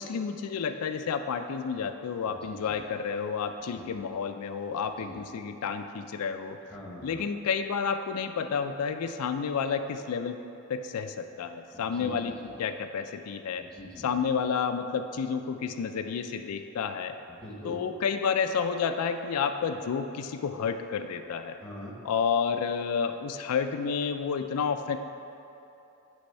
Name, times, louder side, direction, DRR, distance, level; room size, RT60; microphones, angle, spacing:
voice 1, 0.0-6.6 7.0-10.4 10.7-13.6 14.0-17.2 17.6-21.6 22.0-25.0, left 6 dB, 90° left, 7 dB, 0.4 m, -30 dB
voice 2, 2.3-2.8 3.7-4.0 5.0-5.2 6.7-7.3 11.7-12.5 13.6-14.2 17.3-17.8 21.6-22.0, left 1 dB, 5° left, -4 dB, 1.1 m, -44 dB
9.8 x 3.5 x 5.4 m, 2.9 s
head